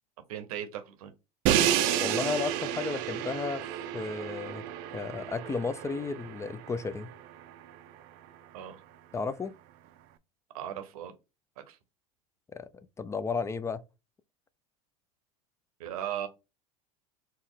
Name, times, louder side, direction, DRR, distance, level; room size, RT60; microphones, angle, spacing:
voice 1, 0.3-1.1 8.5-8.8 10.5-11.1 11.6-11.8 15.8-16.3, right 10 dB, 75° right, 0.9 m, -37 dB
Crash cymbal, 1.5-7.4, right 11 dB, 55° right, 0.5 m, -31 dB
voice 2, 2.0-3.6 3.9-4.6 4.9-7.1 9.1-9.5 12.5-12.7 13.0-13.8, left 4 dB, 15° left, 0.4 m, -33 dB
4.3 x 2.1 x 3.7 m
hypercardioid pair, 85°, 19 cm